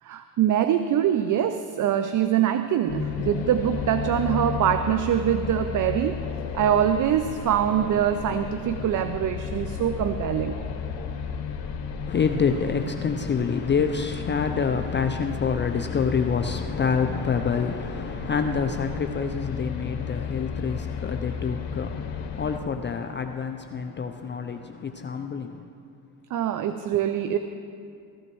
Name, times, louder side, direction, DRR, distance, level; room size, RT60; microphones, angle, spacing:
voice 1, 0.0-6.2 6.5-10.6 26.3-27.4, right 10 dB, 50° right, 0.5 m, -24 dB
sound 1, 2.9-22.6, left 6 dB, 75° left, 1.2 m, -33 dB
voice 2, 12.0-25.7, left 6 dB, 30° left, 0.5 m, -27 dB
15.0 x 14.5 x 3.1 m
cardioid pair, 100°, 39 cm